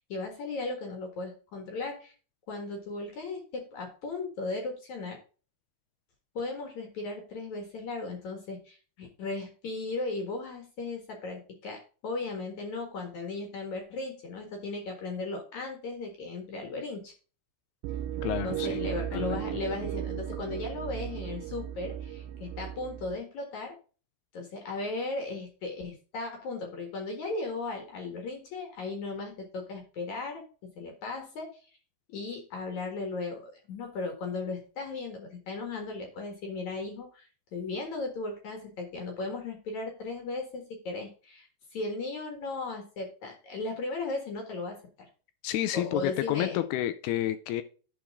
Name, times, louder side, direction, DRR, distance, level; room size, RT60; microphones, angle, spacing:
voice 1, 0.0-2.1 2.5-5.2 6.3-17.1 18.4-23.8 24.3-30.4 30.8-31.5 32.1-44.8 45.7-46.6, left 3 dB, 55° left, 2.4 m, -36 dB
sound 1, 17.8-23.2, right 11 dB, 85° right, 2.7 m, -35 dB
voice 2, 18.2-18.8 19.1-19.4 45.4-47.6, left 13 dB, 80° left, 2.4 m, -30 dB
11.5 x 4.6 x 3.6 m
omnidirectional pair, 5.0 m